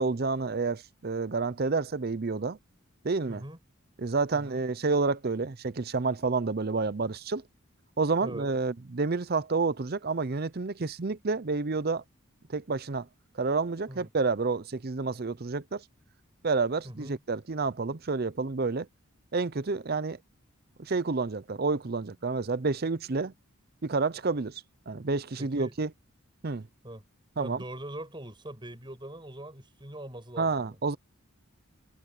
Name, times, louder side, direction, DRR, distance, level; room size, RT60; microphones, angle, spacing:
voice 1, 0.0-2.6 3.0-3.4 4.0-7.4 8.0-12.0 12.5-13.1 13.3-15.8 16.4-18.9 19.3-20.2 20.8-23.3 23.8-25.9 26.4-26.7 27.4-27.6 30.4-31.0, right 4 dB, 45° right, 0.6 m, -29 dB
voice 2, 3.3-3.6 4.3-4.6 8.2-8.5 13.9-14.1 16.8-17.2 25.4-25.7 26.8-27.0 27.4-30.8, right 1 dB, 20° right, 6.5 m, -42 dB
head